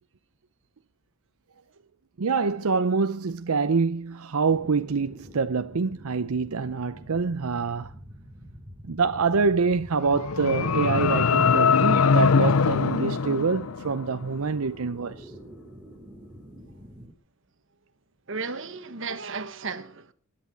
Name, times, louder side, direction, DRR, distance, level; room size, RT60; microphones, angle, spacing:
voice 1, 2.2-7.9 8.8-15.3, right 4 dB, 85° right, 0.6 m, -26 dB
sound 1, 4.5-17.1, equal, 10° right, 2.8 m, -47 dB
sound 2, 10.0-14.2, left 5 dB, 90° left, 0.6 m, -22 dB
voice 2, 18.3-20.1, right 4 dB, 60° right, 1.4 m, -34 dB
21.0 x 10.5 x 4.7 m
head